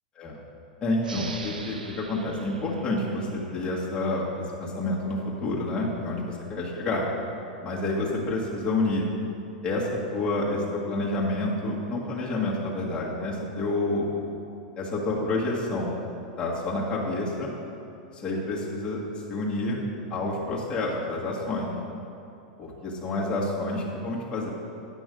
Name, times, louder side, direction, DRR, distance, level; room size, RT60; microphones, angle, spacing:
voice 1, 0.8-7.0 7.6-9.0 9.6-14.1 14.8-15.9 16.4-17.5 18.1-19.0 19.3-19.8 20.1-21.7 22.6-24.5, left 2 dB, 20° left, -5 dB, 1.8 m, -28 dB
sound 1, 1.0-4.3, right 4 dB, 90° right, 0.6 m, -43 dB
9.4 x 6.0 x 5.2 m, 2.7 s
hypercardioid pair, 100°, 4 cm